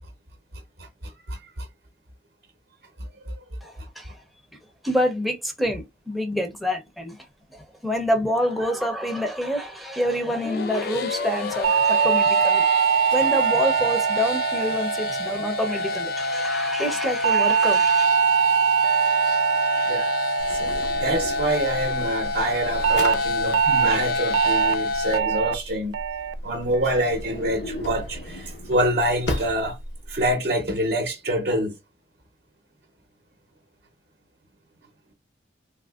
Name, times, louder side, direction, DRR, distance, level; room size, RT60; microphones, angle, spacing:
voice 1, 0.8-1.7 3.3-3.4 19.9-20.7 21.0-26.0 26.4-29.8 30.1-31.8, right 1 dB, 55° right, 0.7 m, -26 dB
voice 2, 3.6-4.2 4.8-7.2 7.5-12.6 13.1-18.1, equal, ahead, 0.6 m, -27 dB
sound 1, 10.2-25.2, left 2 dB, 55° left, 0.4 m, -28 dB
sound 2, 11.6-16.1 17.2-21.7 22.8-23.1 23.5-23.9 24.3-24.7 25.1-25.5 25.9-26.3 26.7-27.1, right 8 dB, 85° right, 0.3 m, -22 dB
Drawer open or close, 20.4-30.3, left 1 dB, 85° left, 0.9 m, -35 dB
3.6 x 2.7 x 2.3 m
head